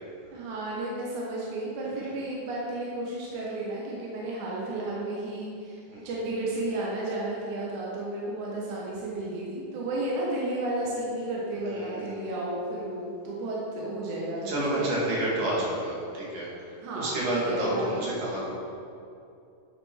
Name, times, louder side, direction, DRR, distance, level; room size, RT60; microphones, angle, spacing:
voice 1, 0.3-14.9 16.8-17.9, right 2 dB, 75° right, -5 dB, 2.6 m, -33 dB
voice 2, 11.7-12.3 14.5-18.5, right 1 dB, 90° right, -6 dB, 3.6 m, -30 dB
9.5 x 6.0 x 4.4 m, 2.6 s
omnidirectional pair, 3.7 m